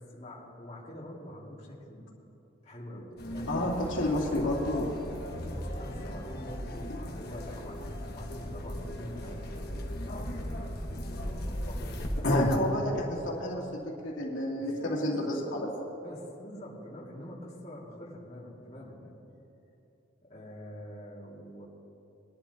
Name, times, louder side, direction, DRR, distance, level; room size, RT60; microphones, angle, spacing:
voice 1, 0.0-2.1 2.6-3.6 4.1-4.3 5.3-10.3 11.2-12.4 14.6-15.4 16.0-19.2 20.2-21.6, equal, 35° left, -6 dB, 2.2 m, -45 dB
sound 1, 3.2-12.6, left 1 dB, 50° left, 1.4 m, -35 dB
voice 2, 3.5-4.9 12.2-15.7, left 1 dB, 80° left, -4 dB, 2.6 m, -30 dB
21.5 x 11.5 x 2.8 m, 2.9 s
head